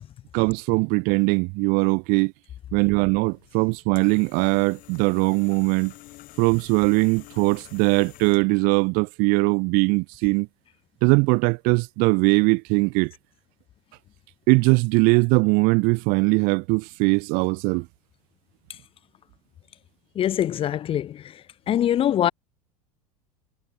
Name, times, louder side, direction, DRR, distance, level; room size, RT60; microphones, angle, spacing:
voice 1, 0.3-2.3 2.7-5.9 6.4-10.5 11.0-13.1 14.5-17.9, right 31 dB, 45° right, 0.8 m, -21 dB
sound 1, 3.3-8.7, left 17 dB, 45° left, 7.9 m, -49 dB
voice 2, 20.2-21.3 21.7-22.3, left 11 dB, 30° left, 0.7 m, -23 dB
figure-of-eight pair, 85°, 20 cm